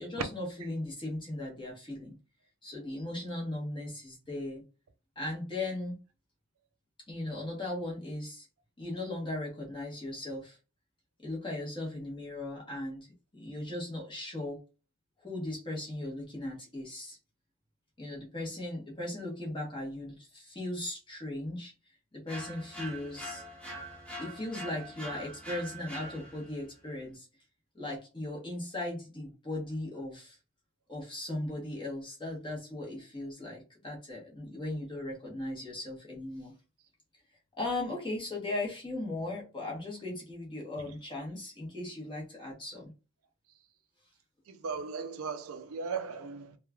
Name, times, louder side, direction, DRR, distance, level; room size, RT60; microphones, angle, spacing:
voice 1, 0.0-2.1 2.6-4.6 5.2-6.0 7.1-8.5 8.8-10.6 11.2-13.1 13.3-14.6 15.2-17.2 18.0-21.7 22.1-23.4 24.2-27.3 27.7-30.4 30.9-36.5 37.6-42.9, left 1 dB, 20° left, 0.9 m, -38 dB
sound 1, 22.3-26.6, right 1 dB, 5° left, 0.6 m, -43 dB
voice 2, 44.5-46.6, right 5 dB, 80° right, 0.4 m, -37 dB
3.1 x 2.3 x 2.2 m
head